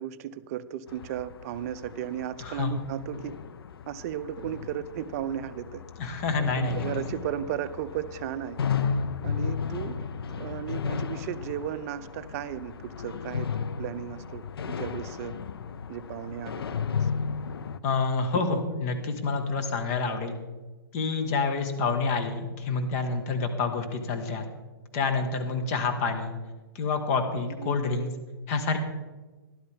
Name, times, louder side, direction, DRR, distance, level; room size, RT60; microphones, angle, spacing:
voice 1, 0.0-3.4 3.9-5.8 6.4-8.6 9.2-15.4 15.9-17.1 27.6-27.8, right 11 dB, 40° right, 12 dB, 0.5 m, -35 dB
sound 1, 0.9-17.8, left 6 dB, 70° left, 0.6 m, -34 dB
voice 2, 2.4-2.7 6.0-6.9 17.8-20.3 20.9-24.4 24.9-26.3 26.7-28.1 28.5-28.8, left 4 dB, 40° left, 5 dB, 1.6 m, -28 dB
12.5 x 11.5 x 3.6 m, 1.2 s
hypercardioid pair, 130°, 13 cm